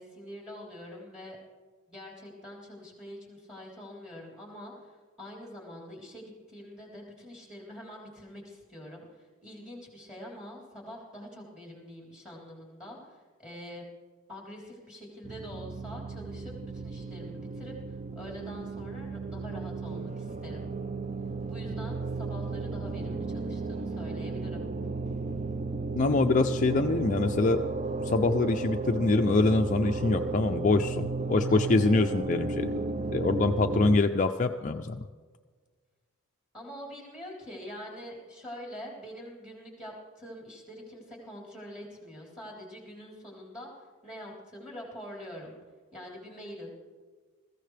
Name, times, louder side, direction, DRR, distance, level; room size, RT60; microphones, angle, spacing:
voice 1, 0.0-1.4 1.9-4.9 5.2-13.8 14.3-17.7 18.2-20.7 21.5-24.7 31.5-31.8 36.5-43.7 44.0-45.6 45.9-46.7, equal, 5° right, -2 dB, 3.6 m, -45 dB
sound 1, 15.2-34.0, right 3 dB, 30° right, 0.4 m, -34 dB
voice 2, 25.9-27.6 28.0-32.7 33.1-35.1, left 3 dB, 35° left, 5 dB, 0.4 m, -25 dB
21.0 x 15.0 x 3.3 m, 1.5 s
head